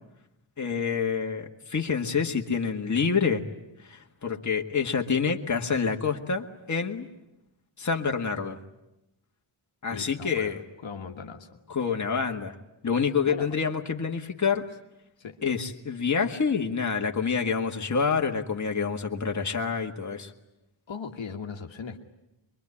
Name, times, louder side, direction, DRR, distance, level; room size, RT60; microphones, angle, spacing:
voice 1, 0.6-3.4 3.8-7.1 7.8-8.6 9.8-10.6 11.7-12.5 12.8-14.7 15.4-20.3, left 5 dB, 35° left, 3 dB, 1.8 m, -27 dB
voice 2, 9.9-11.6 13.3-13.6 15.2-15.4 20.9-22.0, left 5 dB, 65° left, 3 dB, 1.6 m, -39 dB
24.0 x 23.0 x 9.9 m, 0.90 s
wide cardioid pair, 100°, 49 cm